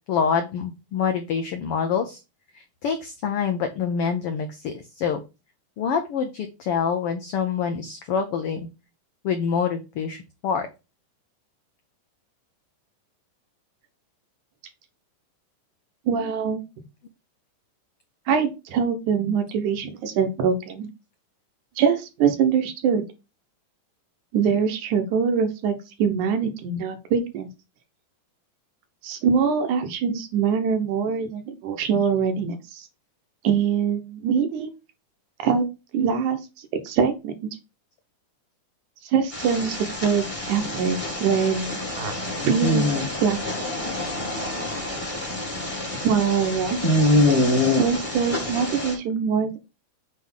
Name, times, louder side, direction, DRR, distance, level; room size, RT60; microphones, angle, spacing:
voice 1, 0.1-2.2 2.8-5.2 5.8-8.6 9.2-10.7, left 6 dB, 80° left, 6 dB, 1.3 m, -26 dB
voice 2, 16.1-16.6 18.3-20.9 21.8-23.0 24.3-27.5 29.0-32.9 33.4-34.7 35.4-35.6 35.9-36.4 36.8-37.5 39.0-42.1 42.4-43.0 43.2-43.4 46.0-46.8 47.8-49.6, right 6 dB, 75° right, 6 dB, 2.5 m, -23 dB
sound 1, 39.3-48.9, left 1 dB, 15° left, 1.3 m, -25 dB
7.8 x 3.1 x 5.5 m, 0.27 s
omnidirectional pair, 3.6 m